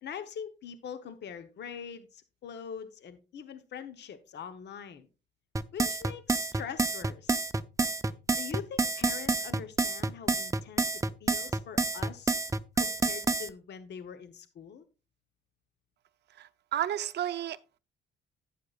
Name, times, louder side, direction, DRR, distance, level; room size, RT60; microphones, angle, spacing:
voice 1, 0.0-5.1 5.7-7.4 8.3-12.4 12.7-14.8, left 7 dB, 60° left, 1.0 m, -43 dB
sound 1, 5.6-13.5, right 3 dB, 15° right, 0.5 m, -28 dB
voice 2, 16.4-17.8, right 11 dB, 60° right, 0.6 m, -33 dB
11.5 x 9.2 x 2.4 m
cardioid pair, 90°, 20 cm